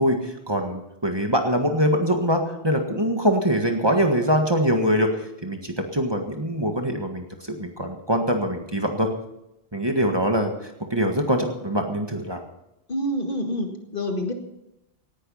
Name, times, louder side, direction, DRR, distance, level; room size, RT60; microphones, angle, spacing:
voice 1, 0.0-5.1 5.4-9.1 9.7-12.4, equal, 25° right, 3 dB, 1.7 m, -23 dB
voice 2, 12.9-14.3, equal, 55° left, 4 dB, 2.1 m, -27 dB
17.5 x 11.5 x 5.6 m, 0.88 s
omnidirectional pair, 1.1 m